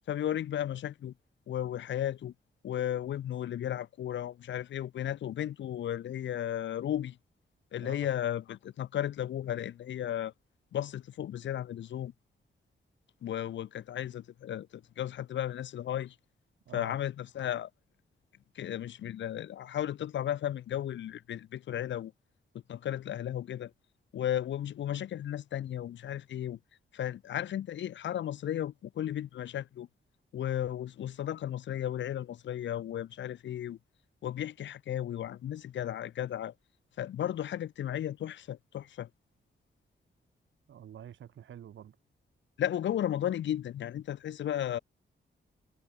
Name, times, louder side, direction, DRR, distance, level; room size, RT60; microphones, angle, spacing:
voice 1, 0.1-1.1 1.5-2.3 2.6-7.2 7.7-10.3 10.7-12.1 13.2-16.2 16.7-17.7 18.5-22.1 22.7-23.7 24.1-26.6 26.9-29.9 30.3-33.8 34.2-36.5 37.0-39.1 42.6-44.8, left 11 dB, 70° left, 0.6 m, -34 dB
voice 2, 40.7-42.0, right 10 dB, 85° right, 2.0 m, -47 dB
wide cardioid pair, 135°, 19 cm